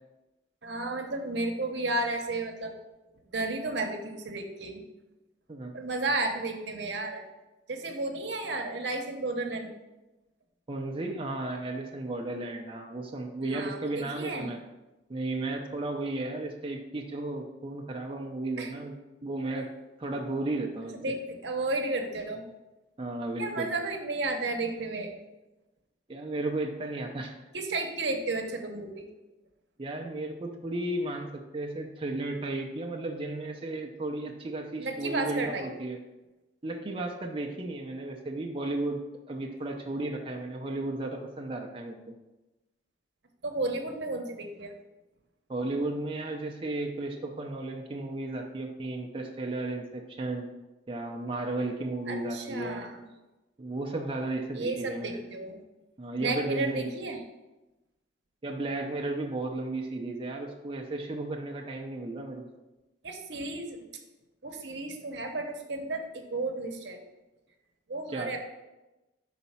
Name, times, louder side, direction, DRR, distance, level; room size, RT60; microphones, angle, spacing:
voice 1, 0.6-2.7 3.3-4.8 5.7-7.2 7.7-9.7 13.4-14.5 18.6-18.7 20.9-22.4 23.4-25.1 27.5-29.0 34.8-35.7 43.4-44.7 52.1-53.0 54.5-55.6 56.1-57.2 63.0-63.8 64.4-67.0 67.9-68.4, right 2 dB, 70° right, 3 dB, 0.9 m, -33 dB
voice 2, 10.7-14.6 15.1-19.7 20.0-21.0 23.0-23.7 26.1-27.3 29.8-36.0 36.6-39.0 39.3-42.1 45.5-50.5 50.9-52.9 53.6-55.2 56.0-56.9 58.4-62.5 68.1-68.3, right 2 dB, 30° right, 1 dB, 0.6 m, -34 dB
5.7 x 4.1 x 5.6 m, 1.0 s
head